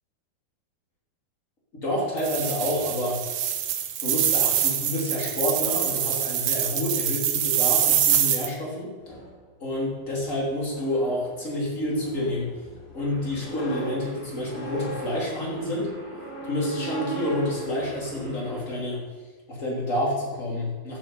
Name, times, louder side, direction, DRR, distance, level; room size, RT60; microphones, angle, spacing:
voice 1, 1.8-3.2 4.0-8.9 9.6-12.5 12.9-15.9 16.4-19.0 19.5-21.0, left 1 dB, 20° left, -4 dB, 3.1 m, -28 dB
sound 1, 2.2-8.5, right 10 dB, 70° right, 2.3 m, -25 dB
sound 2, 9.0-19.0, right 1 dB, 70° left, 4.5 m, -40 dB
sound 3, 13.0-18.6, right 2 dB, 45° right, 0.4 m, -42 dB
15.5 x 6.8 x 5.5 m, 1.3 s
omnidirectional pair, 4.4 m